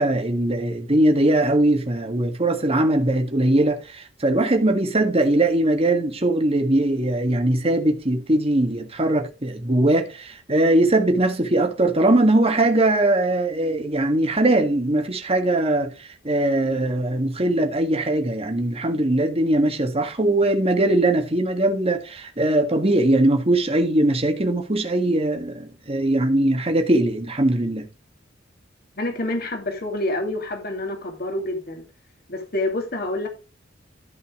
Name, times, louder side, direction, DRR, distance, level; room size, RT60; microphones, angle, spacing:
voice 1, 0.0-27.9, right 1 dB, 30° right, 1.7 m, -21 dB
voice 2, 29.0-31.8 32.3-33.3, left 1 dB, 55° left, 2.5 m, -27 dB
14.0 x 5.4 x 3.7 m
head